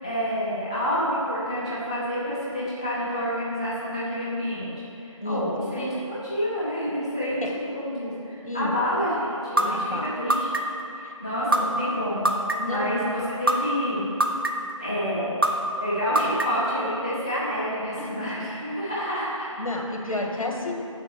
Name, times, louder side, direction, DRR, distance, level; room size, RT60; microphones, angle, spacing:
voice 1, 0.0-4.7 5.0-7.4 7.7-10.5 10.9-12.3 12.6-14.1 14.8-15.4 15.8-19.5 20.1-20.2, equal, 10° left, -12 dB, 0.7 m, -28 dB
voice 2, 5.2-5.5 7.4-7.5 8.4-8.7 9.6-10.1 12.6-12.9 18.0-18.1 19.6-20.7, left 2 dB, 90° left, 0 dB, 1.9 m, -30 dB
sound 1, 9.6-9.7 10.3-10.8 11.5-11.6 12.2-12.8 13.5-13.6 14.2-14.7 15.4-15.5 16.2-16.7, right 1 dB, 40° right, 0.7 m, -21 dB
6.8 x 6.6 x 7.7 m, 2.7 s
figure-of-eight pair, 175°, 17 cm